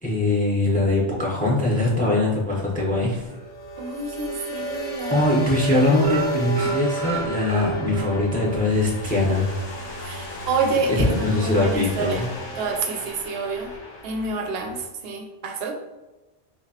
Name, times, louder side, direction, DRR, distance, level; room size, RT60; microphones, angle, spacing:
voice 1, 0.0-3.3 5.1-9.5 10.9-12.3, left 2 dB, 10° left, -4 dB, 0.7 m, -22 dB
sound 1, 2.5-14.9, right 2 dB, 55° left, 0.7 m, -32 dB
sound 2, 3.3-3.9 4.2-4.4 4.7-4.9 5.1-8.1 8.5-8.6 9.0-9.1, right 4 dB, 40° right, 0.9 m, -35 dB
voice 2, 3.8-5.2 10.0-12.3 12.6-13.7 14.0-15.7, right 3 dB, 65° right, 4 dB, 0.7 m, -28 dB
3.8 x 2.9 x 2.8 m, 1.1 s
omnidirectional pair, 1.1 m